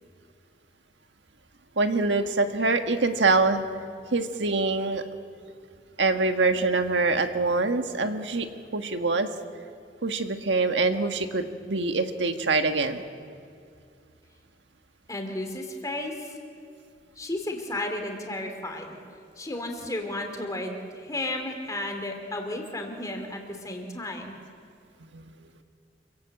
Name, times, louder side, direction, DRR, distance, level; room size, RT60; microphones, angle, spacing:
voice 1, 1.8-3.6 4.1-5.0 6.0-8.5 8.7-9.3 10.0-13.0 25.1-25.2, right 3 dB, 90° right, 7 dB, 1.5 m, -24 dB
voice 2, 15.1-16.1 17.2-19.0 19.4-24.3, left 1 dB, 20° left, 3 dB, 2.7 m, -33 dB
27.0 x 17.5 x 7.8 m, 2.3 s
head